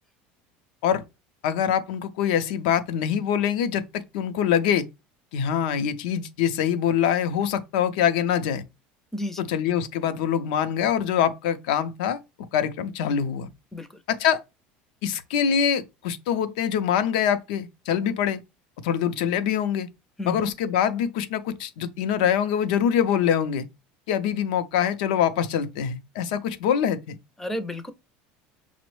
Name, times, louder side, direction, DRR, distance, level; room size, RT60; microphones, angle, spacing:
voice 1, 1.4-4.8 5.3-8.6 9.4-12.2 12.5-13.5 14.1-14.4 15.0-18.4 18.8-19.9 20.2-23.7 24.1-27.2, left 8 dB, 85° left, 0.5 m, -24 dB
voice 2, 9.1-9.5 13.7-14.0 20.2-20.4 27.4-27.9, left 1 dB, 10° left, 0.4 m, -32 dB
6.0 x 2.0 x 3.0 m
cardioid pair, 145°, 4 cm